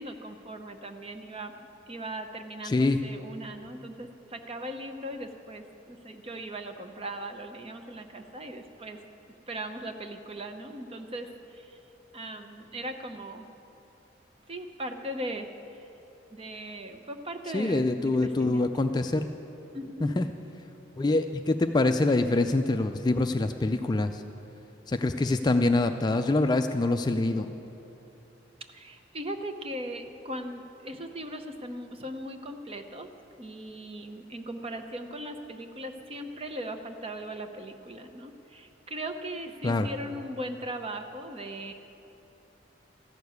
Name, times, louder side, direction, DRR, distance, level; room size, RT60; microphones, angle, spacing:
voice 1, 0.0-1.5 1.9-9.0 9.5-11.8 12.1-13.5 14.5-15.8 16.3-18.7 19.7-20.2 28.7-33.1 33.4-41.7, right 1 dB, 30° right, 6 dB, 0.7 m, -39 dB
voice 2, 2.6-3.0 17.5-19.3 20.0-20.3 21.0-24.2 24.9-27.5 39.6-39.9, left 2 dB, 20° left, 6 dB, 0.3 m, -25 dB
14.0 x 6.7 x 9.4 m, 3.0 s
head